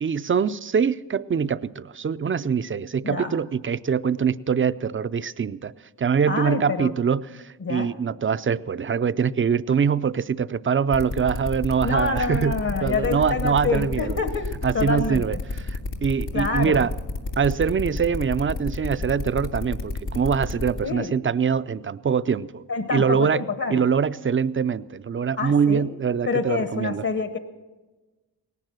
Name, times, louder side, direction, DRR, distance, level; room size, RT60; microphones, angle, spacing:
voice 1, 0.0-5.7 6.0-12.5 12.8-14.2 14.6-16.9 17.4-22.6 22.9-23.4 23.7-27.1, right 6 dB, 30° right, 14 dB, 0.5 m, -24 dB
voice 2, 6.3-6.9 7.6-7.9 11.8-14.5 14.7-15.4 16.3-16.9 20.8-21.1 22.7-23.8 25.4-25.9 26.3-27.4, left 4 dB, 45° left, 9 dB, 1.2 m, -27 dB
sound 1, 10.9-20.8, left 3 dB, 90° left, 2.1 m, -30 dB
18.5 x 11.0 x 6.2 m, 1.2 s
supercardioid pair, 50°, 43 cm